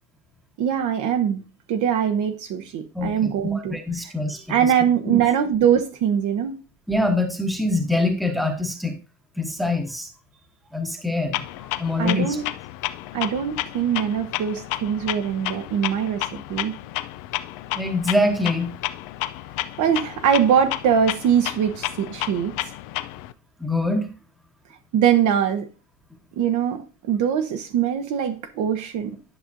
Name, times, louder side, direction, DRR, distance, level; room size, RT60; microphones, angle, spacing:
voice 1, 0.6-1.4 1.7-4.1 4.5-6.6 12.0-12.5 13.1-16.7 19.8-22.7 24.9-25.7 26.4-29.2, right 8 dB, 40° right, 6 dB, 1.0 m, -22 dB
voice 2, 2.9-4.4 5.0-5.2 6.9-8.9 9.4-10.1 10.7-12.4 17.7-18.7 23.6-24.1, left 2 dB, ahead, 3 dB, 1.2 m, -24 dB
Clock, 11.3-23.3, left 15 dB, 45° left, 0.5 m, -31 dB
11.0 x 6.0 x 2.7 m, 0.33 s
supercardioid pair, 130°, 47 cm